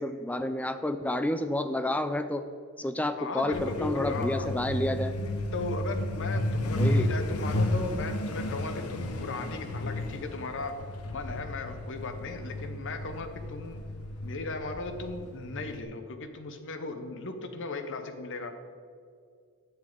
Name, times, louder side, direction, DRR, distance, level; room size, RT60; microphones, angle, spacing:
voice 1, 0.0-2.4 2.8-5.2 6.7-7.1, left 1 dB, 5° left, 10 dB, 0.4 m, -30 dB
voice 2, 3.2-4.5 5.5-10.7 11.0-13.8 14.2-18.5, left 3 dB, 60° left, 7 dB, 0.8 m, -37 dB
Truck, 3.5-15.8, left 1 dB, 90° left, 0.8 m, -33 dB
10.5 x 7.3 x 3.8 m, 2.3 s
head